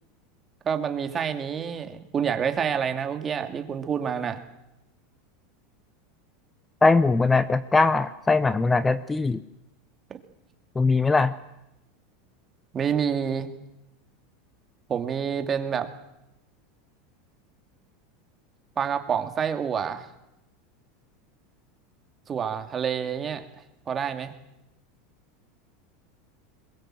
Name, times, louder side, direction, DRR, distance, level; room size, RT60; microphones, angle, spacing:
voice 1, 0.7-4.4 10.1-10.2 12.7-13.5 14.9-15.9 18.8-20.1 22.3-23.4 23.9-24.3, right 7 dB, 30° right, 7 dB, 2.3 m, -28 dB
voice 2, 6.8-9.4 10.7-11.3, left 3 dB, 15° left, 14 dB, 0.8 m, -21 dB
22.0 x 21.5 x 7.6 m, 0.91 s
supercardioid pair, 115°, 0 cm